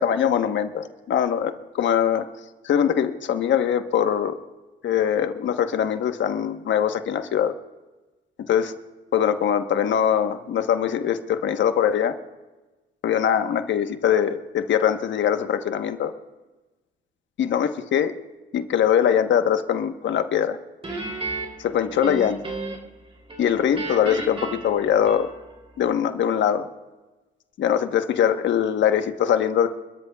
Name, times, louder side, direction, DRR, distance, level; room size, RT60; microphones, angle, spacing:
voice 1, 0.0-2.2 2.6-4.4 4.8-7.5 8.5-8.7 9.1-12.1 13.0-16.1 17.4-18.1 18.5-20.6 21.6-22.4 23.4-25.3 25.8-26.7 27.6-29.7, left 9 dB, 70° left, 7 dB, 1.2 m, -22 dB
Guitar, 20.8-23.0 23.3-25.6, right 2 dB, 30° right, 3.2 m, -33 dB
29.0 x 13.5 x 2.4 m, 1.2 s
cardioid pair, 90°, 20 cm